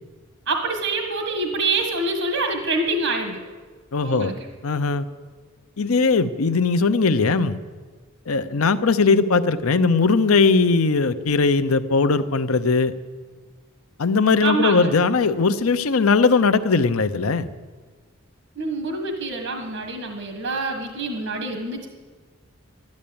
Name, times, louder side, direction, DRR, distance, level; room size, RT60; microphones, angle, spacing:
voice 1, 0.5-3.4 4.0-4.3 14.4-14.9 18.6-21.9, right 3 dB, 80° right, 4 dB, 1.7 m, -26 dB
voice 2, 3.9-4.3 4.6-5.1 5.8-7.6 8.3-12.9 14.0-17.5, left 4 dB, 85° left, 12 dB, 0.7 m, -19 dB
12.5 x 12.0 x 8.7 m, 1.4 s
head